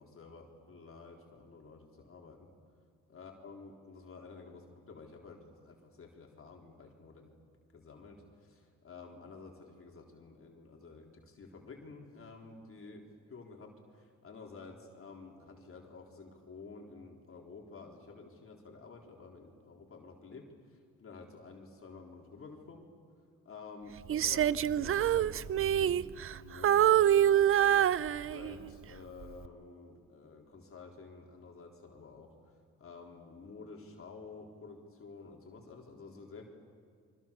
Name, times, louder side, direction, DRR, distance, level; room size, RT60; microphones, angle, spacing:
voice 1, 0.0-2.5 3.1-7.3 7.7-22.9 23.4-36.5, left 4 dB, 45° left, 0 dB, 3.9 m, -51 dB
Female singing, 24.1-26.4 26.6-28.7 29.2-29.5, right 10 dB, 45° right, 0.6 m, -26 dB
28.5 x 25.0 x 7.2 m, 2.2 s
cardioid pair, 90°, 30 cm